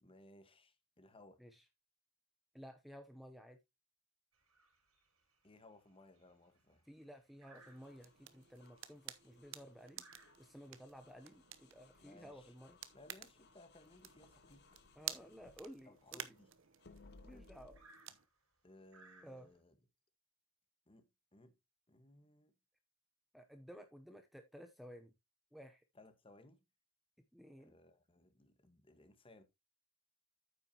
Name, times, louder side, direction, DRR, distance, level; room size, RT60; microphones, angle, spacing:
voice 1, 0.0-1.4 5.4-6.9 12.0-14.7 15.9-16.5 17.3-17.6 18.6-19.7 20.9-21.6 21.9-22.5 25.9-26.6 27.6-29.4, left 2 dB, 25° left, 1.3 m, -62 dB
voice 2, 2.5-3.6 6.9-10.0 10.4-12.8 15.0-16.3 17.2-17.8 19.2-19.5 23.3-25.1 25.5-25.8 27.3-27.8, equal, ahead, 0.7 m, -55 dB
sound 1, 4.3-19.6, right 3 dB, 80° right, 5.1 m, -69 dB
sound 2, 7.5-18.3, right 12 dB, 65° right, 0.8 m, -52 dB
sound 3, 7.6-16.4 16.8-17.8, left 3 dB, 55° left, 0.7 m, -65 dB
9.2 x 8.5 x 2.8 m
head